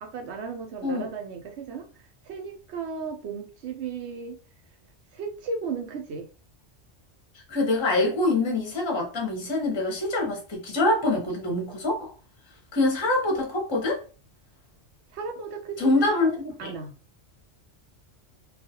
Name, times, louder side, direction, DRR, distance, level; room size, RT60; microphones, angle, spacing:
voice 1, 0.0-1.9 2.3-4.4 5.1-6.3 15.1-16.9, right 5 dB, 70° right, 0.8 m, -35 dB
voice 2, 7.5-12.1 12.7-14.0 15.8-16.7, left 2 dB, 25° left, 0.8 m, -25 dB
2.4 x 2.4 x 2.7 m
omnidirectional pair, 1.2 m